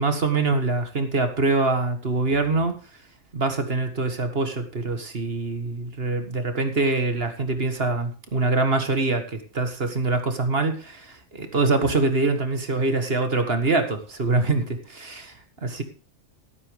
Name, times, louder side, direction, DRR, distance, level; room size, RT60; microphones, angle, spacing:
voice 1, 0.0-2.8 3.3-15.8, right 3 dB, 50° right, 7 dB, 1.9 m, -24 dB
13.5 x 13.0 x 3.4 m, 0.33 s
omnidirectional pair, 1.3 m